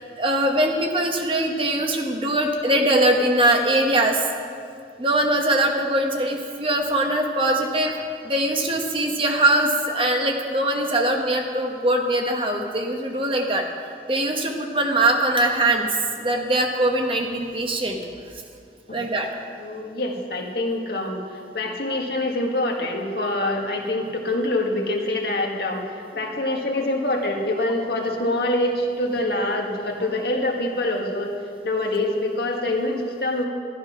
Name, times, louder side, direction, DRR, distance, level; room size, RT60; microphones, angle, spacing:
voice 1, 0.0-4.3 5.0-13.7 14.1-18.0 18.9-19.3 31.7-31.9, right 1 dB, 30° right, 2 dB, 1.2 m, -22 dB
voice 2, 19.6-31.3 31.6-33.5, left 1 dB, 65° left, 1 dB, 1.7 m, -25 dB
12.5 x 12.0 x 5.9 m, 2.3 s
head